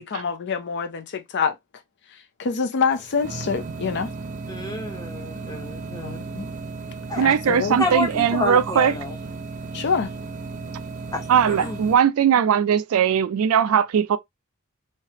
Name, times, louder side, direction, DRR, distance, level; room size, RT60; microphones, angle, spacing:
voice 1, 0.0-1.6 2.4-4.1 5.9-6.5 7.2-7.8 9.7-10.1, left 5 dB, 50° left, 0.5 m, -26 dB
sound 1, 2.9-12.0, right 3 dB, 35° right, 0.6 m, -35 dB
voice 2, 4.5-6.2 7.1-7.2 7.8-9.2 11.1-11.8, left 2 dB, 15° left, 0.8 m, -29 dB
voice 3, 7.2-8.9 11.3-14.2, right 8 dB, 70° right, 0.3 m, -19 dB
3.2 x 2.8 x 2.7 m
head